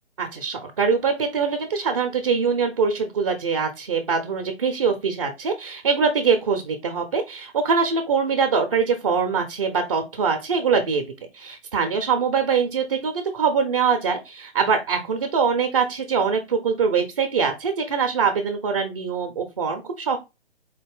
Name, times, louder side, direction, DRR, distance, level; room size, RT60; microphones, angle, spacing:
voice 1, 0.2-11.1 11.3-20.2, right 5 dB, 30° right, 6 dB, 0.5 m, -23 dB
4.0 x 2.5 x 3.4 m, 0.24 s
figure-of-eight pair, 145°, 35 cm